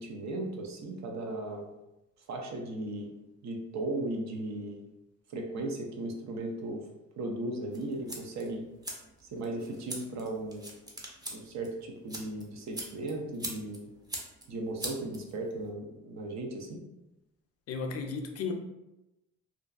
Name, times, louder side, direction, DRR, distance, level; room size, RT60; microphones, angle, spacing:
voice 1, 0.0-1.7 2.3-3.1 3.4-4.8 5.3-6.8 7.2-8.6 9.3-10.7 11.3-13.9 14.5-16.8, right 2 dB, 65° right, 2 dB, 0.6 m, -36 dB
sound 1, 7.7-15.7, right 1 dB, 15° right, 0.5 m, -43 dB
voice 2, 17.7-18.5, left 4 dB, 55° left, 4 dB, 0.5 m, -34 dB
2.5 x 2.2 x 2.4 m, 0.95 s
cardioid pair, 90°, 30 cm